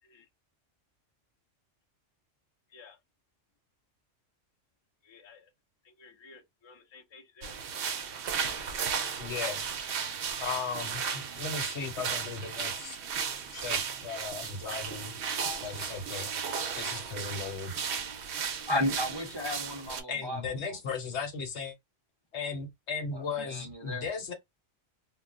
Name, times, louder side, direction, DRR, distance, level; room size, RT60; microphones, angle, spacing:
voice 1, 5.0-5.5 5.8-7.6, left 5 dB, 30° left, 0.5 m, -54 dB
sound 1, 7.4-20.0, right 6 dB, 60° right, 0.7 m, -35 dB
voice 2, 9.2-9.7 10.4-13.0 13.5-15.2 15.6-16.3 16.7-17.7 20.1-21.7 22.3-24.3, left 5 dB, 65° left, 1.0 m, -36 dB
voice 3, 18.7-20.4 20.7-20.8 23.1-24.1, left 1 dB, 30° right, 0.5 m, -33 dB
2.2 x 2.2 x 3.7 m
omnidirectional pair, 1.3 m